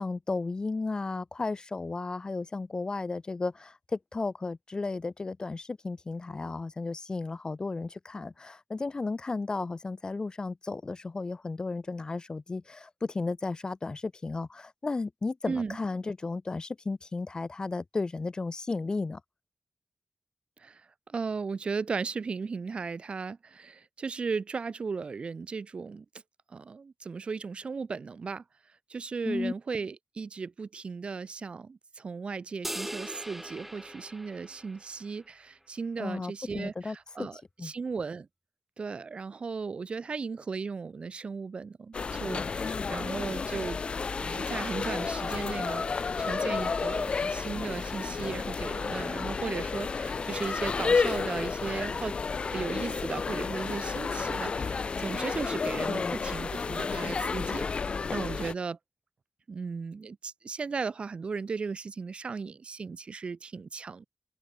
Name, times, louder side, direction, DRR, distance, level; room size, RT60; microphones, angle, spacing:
voice 1, 0.0-19.2 29.2-29.5 36.0-37.3 37.6-37.7 55.9-56.2, left 3 dB, 40° left, 1.4 m, -34 dB
voice 2, 15.5-15.8 20.6-20.8 21.1-26.0 26.5-28.4 28.9-38.3 38.8-43.8 44.1-52.1 52.5-58.8 59.5-64.0, right 5 dB, 65° right, 1.6 m, -36 dB
sound 1, 32.6-35.2, right 1 dB, 10° right, 1.9 m, -40 dB
sound 2, 41.9-58.5, left 5 dB, 60° left, 0.6 m, -31 dB
open air
wide cardioid pair, 100°, 2 cm